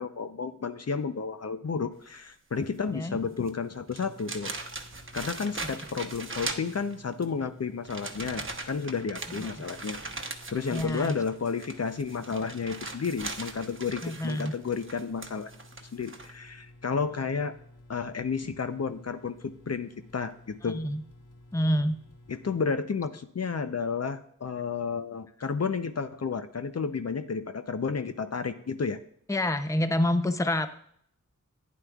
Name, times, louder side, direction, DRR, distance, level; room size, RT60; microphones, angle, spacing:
voice 1, 0.0-4.5 5.1-15.5 15.9-17.5 17.9-20.8 22.3-29.0, left 5 dB, 50° left, 9 dB, 0.6 m, -32 dB
sound 1, 3.4-3.5 3.9-7.2 7.8-16.3, right 3 dB, 40° right, 0.9 m, -40 dB
sound 2, 4.0-22.6, left 1 dB, 75° left, 1.0 m, -53 dB
voice 2, 10.7-11.1 14.0-14.5 20.6-21.0 21.5-22.0 29.3-30.7, left 1 dB, 10° left, 9 dB, 0.6 m, -27 dB
11.5 x 9.4 x 2.4 m, 0.66 s
cardioid pair, 45°, 32 cm